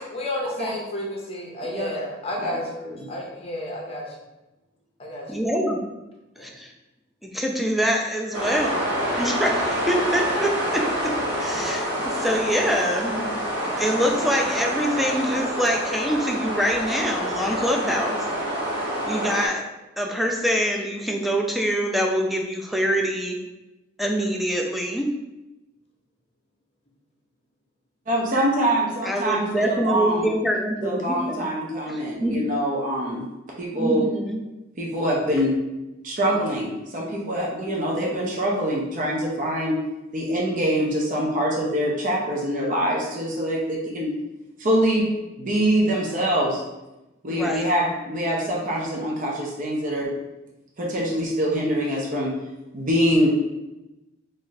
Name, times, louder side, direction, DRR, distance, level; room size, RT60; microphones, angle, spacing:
voice 1, 0.0-4.2 5.0-5.4 6.4-6.5, left 1 dB, 30° left, -1 dB, 0.7 m, -31 dB
voice 2, 5.3-5.8 6.4-6.7 7.2-8.8 9.2-13.4 13.8-18.2 19.1-19.7 20.0-23.4 24.0-25.1 29.0-31.5 31.9-32.4 33.8-34.4 47.3-47.7, equal, ahead, 1 dB, 0.4 m, -25 dB
sound 1, 8.3-19.5, equal, 60° right, 1.2 m, -27 dB
voice 3, 28.1-30.3 30.8-33.3 33.6-34.1 34.8-35.6 36.0-39.8 40.1-44.2 44.6-45.1 45.4-46.6 47.2-50.1 50.8-52.3 52.7-53.3, equal, 40° right, -3 dB, 0.6 m, -24 dB
3.1 x 2.5 x 3.9 m, 1.0 s
head